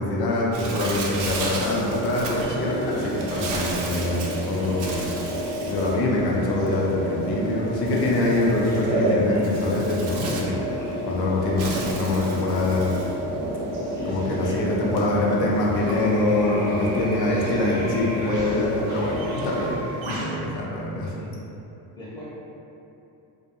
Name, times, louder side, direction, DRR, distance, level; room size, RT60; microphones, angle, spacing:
voice 1, 0.0-5.0 5.7-10.6 11.0-13.0 14.1-21.1, left 2 dB, 50° left, -3 dB, 0.6 m, -24 dB
Bird, 0.5-20.4, right 3 dB, 75° right, 0.6 m, -37 dB
sound 1, 1.7-19.7, equal, 30° right, 0.7 m, -30 dB
voice 2, 13.8-15.1 21.0-21.4 22.0-22.2, left 1 dB, 10° left, -10 dB, 0.7 m, -37 dB
2.3 x 2.2 x 2.9 m, 2.8 s
cardioid pair, 105°, 49 cm